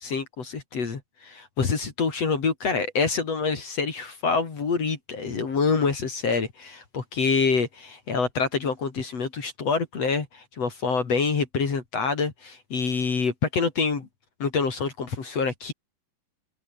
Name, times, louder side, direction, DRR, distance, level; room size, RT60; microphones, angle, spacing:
voice 1, 0.0-14.1 14.4-15.7, left 5 dB, 50° left, 4.2 m, -26 dB
omnidirectional pair, 3.7 m